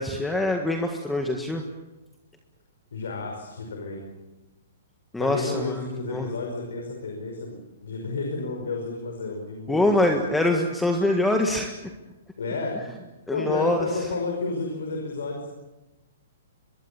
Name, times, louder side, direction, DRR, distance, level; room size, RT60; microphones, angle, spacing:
voice 1, 0.0-1.6 5.1-5.8 6.1-6.3 9.7-11.7 13.3-13.9, left 1 dB, 5° left, 4 dB, 1.7 m, -24 dB
voice 2, 2.9-4.0 5.2-10.3 12.4-12.8 13.3-15.5, left 3 dB, 85° left, 1 dB, 5.4 m, -31 dB
24.5 x 21.5 x 7.1 m, 1.1 s
hypercardioid pair, 150°, 0 cm